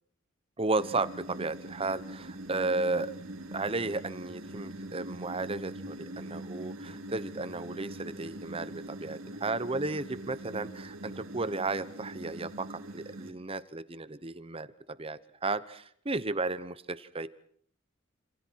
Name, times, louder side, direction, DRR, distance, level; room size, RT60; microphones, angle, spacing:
voice 1, 0.6-3.1 3.5-14.7 15.0-17.3, right 3 dB, 25° right, 14 dB, 1.0 m, -34 dB
sound 1, 0.8-13.3, right 1 dB, 75° right, 3.5 m, -43 dB
29.0 x 27.5 x 4.7 m, 0.62 s
head